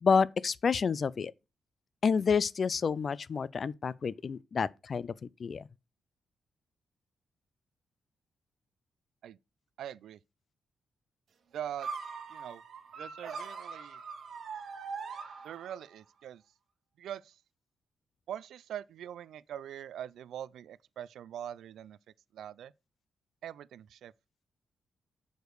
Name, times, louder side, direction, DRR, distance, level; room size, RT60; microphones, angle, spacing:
voice 1, 0.0-1.3 2.0-5.1 5.4-5.6, left 5 dB, 40° left, 0.3 m, -29 dB
voice 2, 9.8-10.2 11.5-11.9 12.3-12.6 13.0-14.0 15.4-16.4 17.0-17.4 18.3-22.0 22.3-22.7 23.4-24.1, right 10 dB, 85° right, 0.3 m, -42 dB
sound 1, 11.8-15.9, right 5 dB, 55° right, 1.1 m, -42 dB
6.5 x 5.1 x 4.7 m
wide cardioid pair, 165°, 0 cm